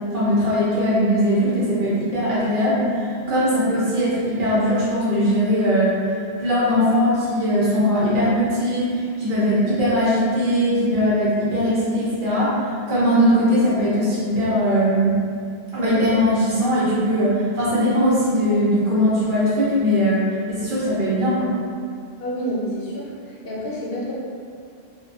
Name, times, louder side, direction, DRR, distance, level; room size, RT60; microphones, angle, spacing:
voice 1, 0.1-12.6 12.9-15.2 15.7-21.5, equal, 55° right, -9 dB, 0.9 m, -20 dB
voice 2, 22.2-24.1, equal, 70° left, -6 dB, 0.8 m, -29 dB
2.4 x 2.1 x 2.5 m, 2.3 s
omnidirectional pair, 1.1 m